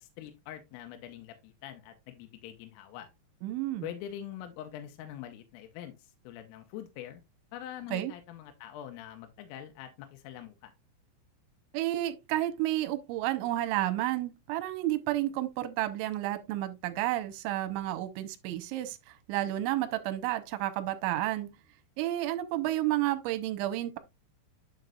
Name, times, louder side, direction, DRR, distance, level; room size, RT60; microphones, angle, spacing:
voice 1, 0.0-3.1 3.8-7.2 7.5-10.7, left 11 dB, 85° left, 3.4 m, -44 dB
voice 2, 3.4-3.9 7.9-8.1 11.7-19.0 19.3-21.5 22.0-24.0, right 15 dB, 80° right, 2.9 m, -31 dB
9.2 x 6.5 x 2.3 m
omnidirectional pair, 5.9 m